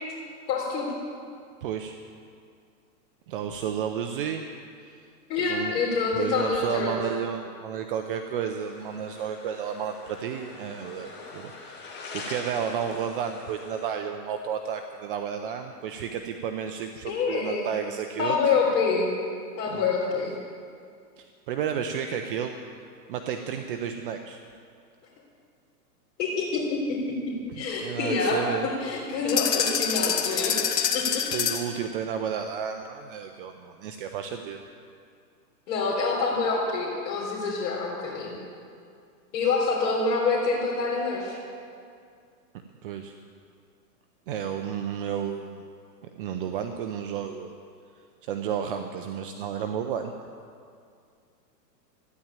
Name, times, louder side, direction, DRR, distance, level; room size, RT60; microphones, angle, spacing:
voice 1, 0.5-0.9 5.3-6.9 17.1-17.6 18.2-19.1 19.6-20.3 26.2-30.6 30.9-31.2 35.7-38.4 39.3-41.4, left 4 dB, 45° left, -6 dB, 3.8 m, -26 dB
voice 2, 1.6-1.9 3.3-4.5 4.8-5.0 5.4-5.8 6.1-11.8 12.1-18.4 19.7-19.9 21.2-22.6 23.1-24.4 27.5-28.7 31.3-34.6 42.8-43.1 44.3-45.7 46.2-47.5 48.2-50.1, right 8 dB, 35° right, 6 dB, 0.6 m, -32 dB
sound 1, 8.7-13.9, left 3 dB, 20° left, 2.2 m, -43 dB
sound 2, 29.3-31.8, left 8 dB, 75° left, 2.2 m, -26 dB
13.0 x 10.5 x 8.8 m, 2.3 s
hypercardioid pair, 150°, 50 cm